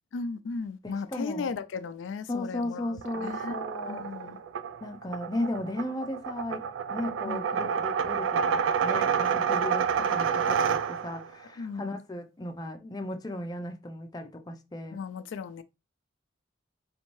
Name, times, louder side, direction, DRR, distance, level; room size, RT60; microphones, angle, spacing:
voice 1, 0.1-3.6 3.8-4.4 7.2-7.8 11.6-11.9 14.9-15.6, left 4 dB, 85° left, 0.4 m, -36 dB
voice 2, 0.8-1.5 2.3-4.2 4.8-6.6 6.9-15.0, left 1 dB, 20° left, 0.5 m, -36 dB
sound 1, 3.0-11.3, right 7 dB, 85° right, 0.3 m, -29 dB
4.2 x 2.7 x 3.0 m
head